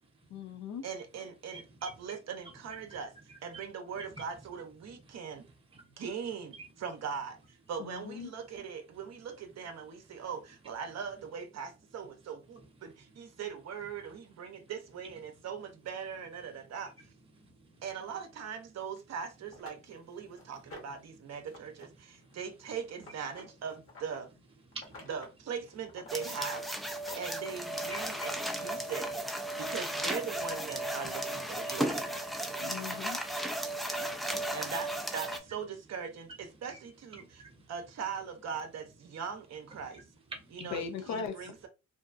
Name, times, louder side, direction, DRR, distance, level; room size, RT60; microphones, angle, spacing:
voice 1, 0.3-0.8 7.8-8.3 32.6-33.2 40.6-41.5, left 6 dB, 65° left, 0.7 m, -39 dB
voice 2, 0.8-3.1 3.4-5.4 6.0-16.9 17.8-24.3 25.1-26.7 27.1-29.1 29.6-32.1 34.5-37.4 37.7-40.0 40.5-41.7, right 6 dB, 60° right, 0.7 m, -40 dB
voice 3, 1.5-1.9 2.8-3.0 3.3-3.6 4.0-4.1 5.1-5.2 5.7-5.8 12.5-13.3 17.3-17.8 20.3-20.5 21.1-21.2 22.1-22.4 24.7-25.1 27.9-28.3 31.0-31.2 31.6-32.0 32.4-32.6 34.2-34.7 36.7-36.8 37.1-37.6 39.8-40.0 40.3-40.7, right 2 dB, 20° right, 0.9 m, -49 dB
sound 1, 19.0-19.1 19.5-21.1 21.4-21.9 22.1-24.2 24.7-25.4 25.7-26.5 26.9-28.4 29.3-29.4 29.9-30.0, left 2 dB, 45° left, 1.1 m, -51 dB
sound 2, 26.1-35.4, right 1 dB, ahead, 0.4 m, -35 dB
2.6 x 2.3 x 2.5 m
cardioid pair, 90°, 30 cm